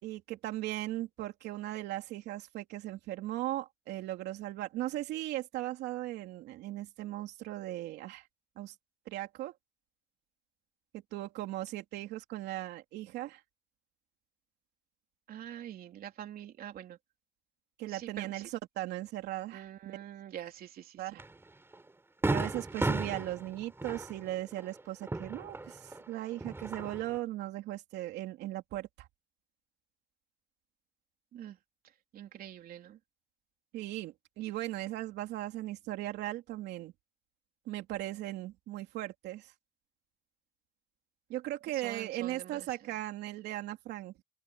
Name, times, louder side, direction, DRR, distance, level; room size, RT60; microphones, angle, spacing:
voice 1, 0.0-8.3 8.6-8.7 9.1-9.5 10.9-13.4 17.8-19.7 21.0-21.2 22.3-29.1 33.7-36.9 37.7-39.5 41.3-44.1, right 15 dB, 85° right, 3.0 m, -38 dB
voice 2, 15.3-17.0 17.9-18.5 19.5-21.2 31.3-31.6 32.1-33.0 41.7-42.7, right 11 dB, 60° right, 3.4 m, -45 dB
Fireworks, 21.2-21.3 21.7-21.8 22.2-26.0 26.3-27.2, right 2 dB, 15° right, 4.1 m, -34 dB
open air
cardioid pair, 110°, 17 cm